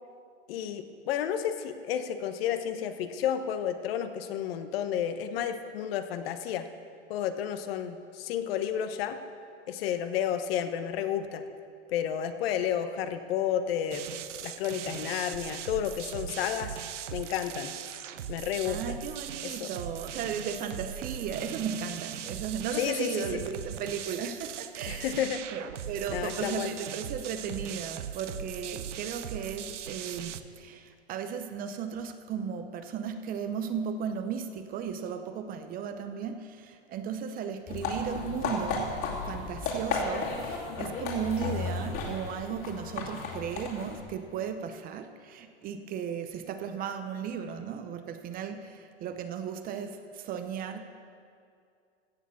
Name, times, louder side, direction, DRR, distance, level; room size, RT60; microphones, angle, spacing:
voice 1, 0.5-6.7 7.1-9.2 9.7-11.4 11.9-14.1 14.4-16.8 17.1-17.7 18.3-19.0 19.4-19.7 22.8-23.4 24.9-25.4 26.1-26.7, left 9 dB, 55° left, 9 dB, 1.1 m, -31 dB
sound 1, 13.9-30.4, right 9 dB, 85° right, 0.8 m, -39 dB
voice 2, 18.7-25.2 25.5-50.8, right 7 dB, 25° right, 8 dB, 0.6 m, -36 dB
sound 2, 37.7-44.0, left 4 dB, 35° left, 2.5 m, -34 dB
15.5 x 7.3 x 7.1 m, 2.3 s
hypercardioid pair, 130°, 35 cm